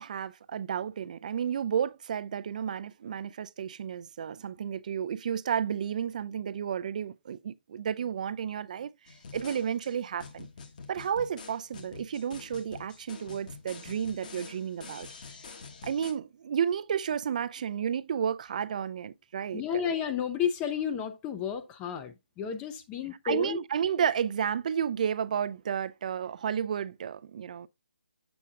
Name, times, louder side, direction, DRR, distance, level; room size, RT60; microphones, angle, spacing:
voice 1, 0.0-8.9 9.3-10.5 10.9-15.1 15.8-19.6 23.2-27.7, right 8 dB, 45° right, 0.4 m, -32 dB
sound 1, 9.1-16.1, left 5 dB, 50° left, 1.2 m, -47 dB
voice 2, 19.5-23.6, left 7 dB, 15° left, 0.5 m, -32 dB
7.2 x 7.0 x 2.4 m
hypercardioid pair, 150°, 6 cm